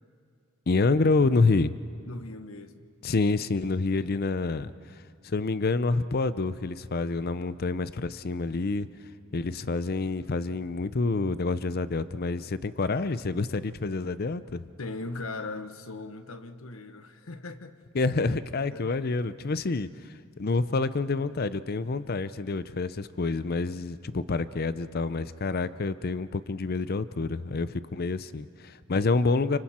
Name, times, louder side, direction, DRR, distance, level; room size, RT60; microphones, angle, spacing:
voice 1, 0.7-1.7 3.0-8.9 9.3-14.7 17.9-29.6, left 3 dB, 45° left, 14 dB, 0.6 m, -28 dB
voice 2, 2.0-2.8 14.8-17.8 18.7-18.9, left 2 dB, 85° left, 9 dB, 1.2 m, -39 dB
29.5 x 25.5 x 4.3 m, 2.2 s
head